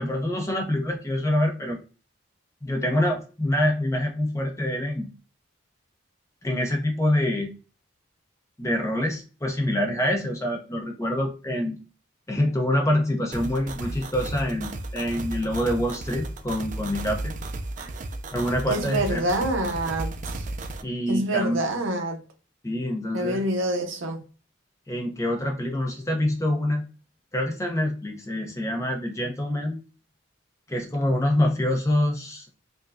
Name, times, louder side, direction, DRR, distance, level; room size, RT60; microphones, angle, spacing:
voice 1, 0.0-1.8 2.6-5.1 6.4-7.5 8.6-11.8 12.3-17.3 18.3-19.2 20.8-21.6 22.6-23.4 24.9-26.8 27.3-29.8 30.7-32.5, left 1 dB, 15° left, 0.7 m, -26 dB
sound 1, 13.3-20.8, right 2 dB, 40° right, 0.4 m, -34 dB
voice 2, 18.7-20.5 21.1-22.2 23.1-24.2, right 1 dB, 75° right, 0.8 m, -27 dB
4.8 x 2.2 x 2.5 m
head